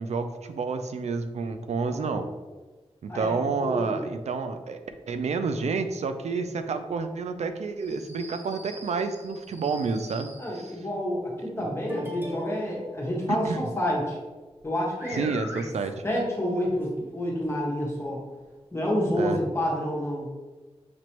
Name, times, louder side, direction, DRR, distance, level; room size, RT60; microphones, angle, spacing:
voice 1, 0.0-2.3 3.0-4.8 5.1-10.3 13.3-13.6 15.1-15.9 19.2-19.4, right 4 dB, 90° right, 8 dB, 0.4 m, -29 dB
voice 2, 3.1-4.0 10.4-14.2 14.6-15.7 16.0-18.2 18.7-20.3, equal, 25° left, -3 dB, 1.3 m, -29 dB
sound 1, 7.8-10.8 11.9-12.9 14.6-14.7 15.0-15.6 16.8-16.9 17.4-17.5 18.3-18.4, equal, 20° right, 1.0 m, -42 dB
6.0 x 3.0 x 2.9 m, 1.3 s
wide cardioid pair, 115°, 11 cm